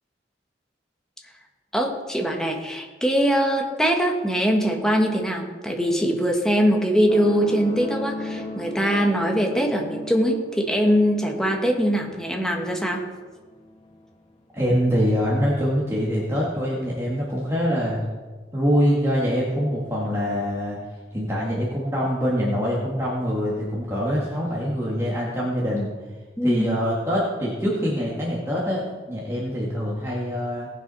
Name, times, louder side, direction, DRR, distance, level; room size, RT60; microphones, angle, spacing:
voice 1, 1.7-13.0 26.4-26.7, equal, 5° left, 1 dB, 1.7 m, -22 dB
sound 1, 7.1-14.1 15.0-15.1, left 1 dB, 35° left, 1.6 m, -35 dB
voice 2, 14.5-18.0 18.5-20.8 21.1-25.9 26.4-30.7, equal, 15° right, -5 dB, 2.1 m, -24 dB
18.5 x 7.1 x 5.6 m, 1.3 s
head